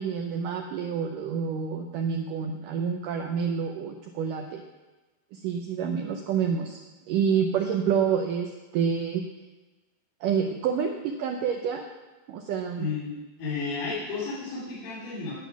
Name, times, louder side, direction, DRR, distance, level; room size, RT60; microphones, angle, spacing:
voice 1, 0.0-4.6 5.3-6.8 7.1-9.2 10.2-11.9 12.3-12.9, right 7 dB, 85° right, 3 dB, 1.9 m, -28 dB
voice 2, 12.8-13.1 13.4-15.3, left 4 dB, 60° left, -9 dB, 4.3 m, -32 dB
10.0 x 9.2 x 6.0 m, 1.2 s
omnidirectional pair, 4.7 m